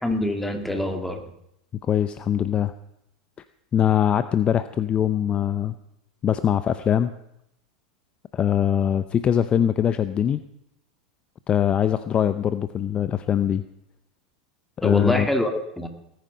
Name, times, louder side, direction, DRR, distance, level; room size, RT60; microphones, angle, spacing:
voice 1, 0.0-1.2 14.8-15.9, left 1 dB, 5° left, 5 dB, 2.3 m, -25 dB
voice 2, 1.9-2.7 3.7-5.7 6.2-7.2 8.3-10.4 11.5-13.6 14.8-15.3, left 9 dB, 30° left, 12 dB, 0.7 m, -22 dB
19.0 x 9.4 x 5.6 m, 0.80 s
hypercardioid pair, 95°, 4 cm